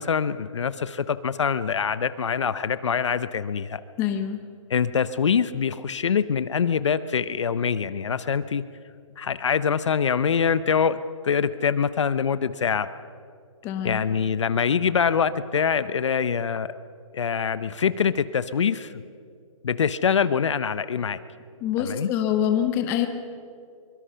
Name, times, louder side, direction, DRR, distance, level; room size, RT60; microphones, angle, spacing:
voice 1, 0.0-3.8 4.7-8.6 9.2-11.0 11.2-12.9 13.8-16.7 17.1-19.0 19.6-21.2 21.9-22.1, left 6 dB, 55° left, 14 dB, 0.8 m, -24 dB
voice 2, 4.0-4.4 13.6-14.0 21.6-23.1, left 10 dB, 10° left, 7 dB, 0.9 m, -25 dB
23.5 x 23.0 x 5.7 m, 2.3 s
hypercardioid pair, 165°, 18 cm